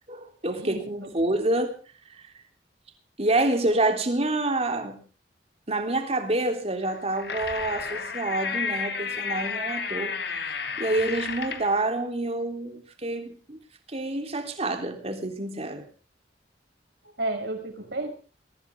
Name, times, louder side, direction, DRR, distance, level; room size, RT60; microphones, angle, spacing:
voice 1, 0.1-1.8 2.1-2.3 3.2-5.0 5.7-10.1 10.4-13.6 13.9-15.8, right 2 dB, 35° right, 5 dB, 3.4 m, -27 dB
voice 2, 0.6-1.1 17.2-18.1, right 2 dB, 60° right, 4 dB, 6.0 m, -32 dB
sound 1, 6.9-11.7, left 5 dB, 65° left, 3.1 m, -32 dB
22.5 x 16.5 x 3.6 m, 0.37 s
head